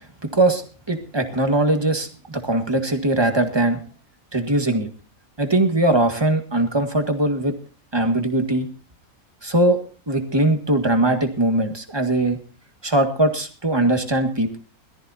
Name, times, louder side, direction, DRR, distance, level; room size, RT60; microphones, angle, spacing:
voice 1, 0.2-0.6 0.9-3.8 4.3-4.9 5.4-7.5 7.9-8.7 9.4-9.8 10.1-12.4 12.8-14.6, right 1 dB, 20° right, 5 dB, 1.7 m, -20 dB
22.0 x 14.0 x 2.7 m, 0.36 s
omnidirectional pair, 1.5 m